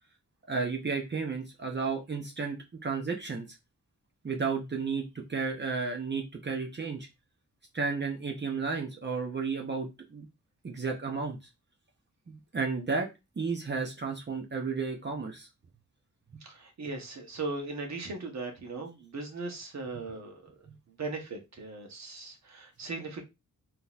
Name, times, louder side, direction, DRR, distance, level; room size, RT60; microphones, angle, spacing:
voice 1, 0.5-2.6 2.8-3.5 4.2-5.0 5.3-7.1 7.7-10.3 10.6-11.4 12.3-13.1 13.4-15.5, right 4 dB, 35° right, 1 dB, 0.7 m, -32 dB
voice 2, 16.5-20.5 20.9-23.2, right 3 dB, 55° right, 3 dB, 1.0 m, -38 dB
3.7 x 2.8 x 2.4 m, 0.23 s
wide cardioid pair, 110°, 32 cm